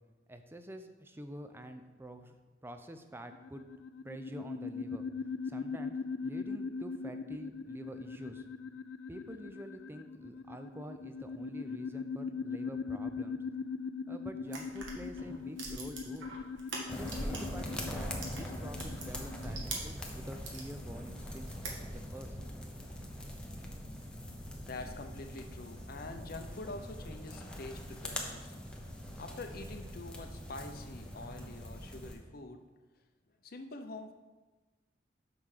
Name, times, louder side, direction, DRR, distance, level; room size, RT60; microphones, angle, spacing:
voice 1, 0.3-2.4 2.6-3.6 4.0-5.0 5.4-6.0 6.2-8.4 9.1-13.4 14.1-16.3 17.0-21.6 21.8-22.4, equal, 10° right, 7 dB, 0.5 m, -47 dB
sound 1, 3.3-19.6, left 5 dB, 85° left, 0.4 m, -41 dB
sound 2, 14.5-17.6 17.9-20.7 21.1-22.2, right 2 dB, 85° right, 1.6 m, -43 dB
sound 3, 16.9-32.2, equal, 5° left, 0.9 m, -43 dB
voice 2, 24.6-28.6 29.2-32.6 33.4-34.1, left 2 dB, 50° left, 6 dB, 0.7 m, -45 dB
6.0 x 5.5 x 6.6 m, 1.2 s
head